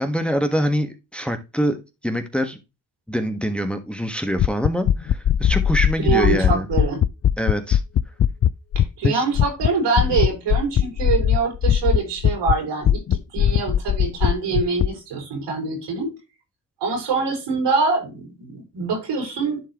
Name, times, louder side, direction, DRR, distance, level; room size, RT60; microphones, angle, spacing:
voice 1, 0.0-2.6 3.1-6.7 7.4-7.8 9.0-9.2, equal, 5° left, 6 dB, 1.4 m, -24 dB
sound 1, 4.4-9.1 9.3-9.7 10.0-12.5 12.8-14.9, left 10 dB, 35° left, 0.5 m, -18 dB
voice 2, 6.0-7.0 8.8-16.1 16.8-19.6, right 4 dB, 80° right, 2 dB, 5.2 m, -24 dB
11.0 x 4.6 x 3.0 m, 0.26 s
supercardioid pair, 65°, 42 cm